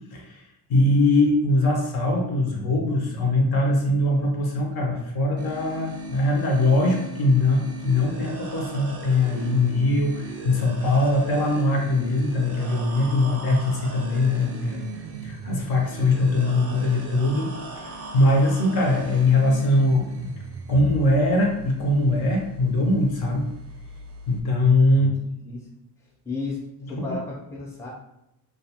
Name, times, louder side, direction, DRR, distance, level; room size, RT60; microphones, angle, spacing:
voice 1, 0.1-0.4 0.7-14.8 15.2-17.5 17.8-20.3 20.7-23.5 24.3-25.1 27.0-27.2, left 2 dB, 60° left, 1 dB, 0.7 m, -22 dB
sound 1, 5.4-24.4, right 2 dB, 35° right, 0.4 m, -39 dB
voice 2, 24.9-25.6 26.2-26.6 26.9-27.9, left 3 dB, 5° left, -4 dB, 0.6 m, -33 dB
2.3 x 2.3 x 2.8 m, 0.83 s
cardioid pair, 120°, 41 cm